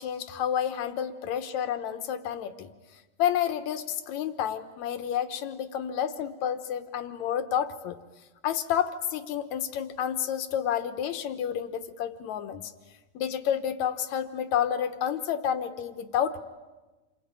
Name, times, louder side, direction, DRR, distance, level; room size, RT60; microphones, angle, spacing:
voice 1, 0.0-2.7 3.2-8.0 8.4-12.6 13.2-16.4, left 9 dB, 65° left, 9 dB, 2.3 m, -30 dB
28.0 x 23.0 x 8.9 m, 1.2 s
omnidirectional pair, 3.8 m